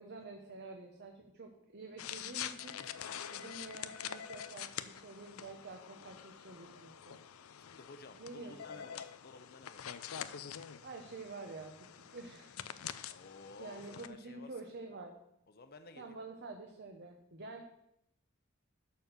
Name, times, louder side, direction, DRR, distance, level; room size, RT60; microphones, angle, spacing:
voice 1, 0.0-2.8 3.3-7.2 8.2-8.8 10.8-12.6 13.1-13.2 13.6-15.2 16.0-17.7, right 3 dB, 55° right, 3 dB, 1.0 m, -48 dB
sound 1, 2.0-14.1, left 9 dB, 90° left, 0.5 m, -46 dB
voice 2, 7.6-10.0 13.1-14.8 15.5-16.2, left 3 dB, 50° left, 9 dB, 0.7 m, -54 dB
12.0 x 4.5 x 6.7 m, 0.80 s
head